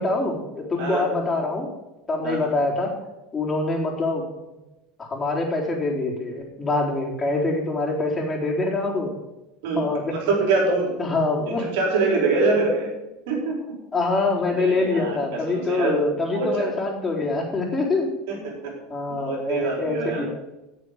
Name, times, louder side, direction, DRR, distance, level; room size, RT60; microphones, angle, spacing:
voice 1, 0.0-1.7 2.1-2.9 3.3-4.2 5.0-9.1 9.8-10.1 11.0-11.7 13.9-18.2 18.9-20.3, left 3 dB, 20° left, -2 dB, 4.0 m, -25 dB
voice 2, 10.3-10.9 11.5-12.9 13.3-13.5 14.6-16.1 16.3-16.7 18.3-18.4 19.1-20.3, right 3 dB, 70° right, 0 dB, 4.2 m, -24 dB
16.0 x 7.1 x 5.1 m, 0.98 s
hypercardioid pair, 85°, 0 cm